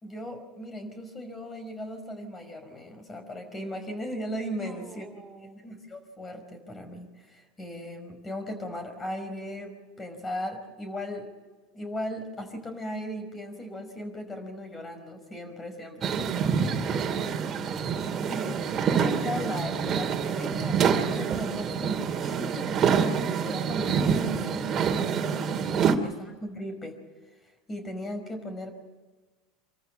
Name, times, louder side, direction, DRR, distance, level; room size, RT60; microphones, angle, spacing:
voice 1, 0.0-5.1 5.4-11.3 11.7-16.6 18.3-27.0 27.7-28.7, equal, 20° left, 6 dB, 5.4 m, -37 dB
voice 2, 4.6-5.6 16.4-17.8, right 3 dB, 10° right, 1 dB, 4.3 m, -47 dB
sound 1, 16.0-26.0, right 7 dB, 35° right, 2.6 m, -27 dB
26.5 x 14.0 x 7.8 m, 1.3 s
hypercardioid pair, 95°, 0 cm